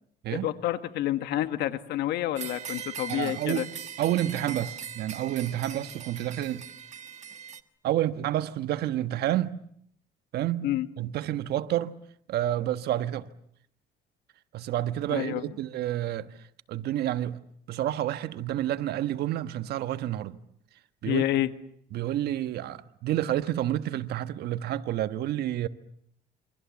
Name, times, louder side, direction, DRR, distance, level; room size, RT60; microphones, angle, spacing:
voice 1, 0.3-3.6 10.6-10.9 15.1-15.5 21.0-21.5, left 14 dB, 80° left, 1.6 m, -28 dB
sound 1, 2.4-7.6, right 7 dB, 45° right, 1.4 m, -40 dB
voice 2, 3.1-6.7 7.8-9.6 10.3-10.7 11.0-12.0 12.3-13.3 14.5-16.3 16.7-17.4 17.7-20.4 21.0-21.2 21.9-25.7, right 12 dB, 70° right, 1.3 m, -29 dB
28.0 x 24.5 x 7.2 m
cardioid pair, 110°, 17 cm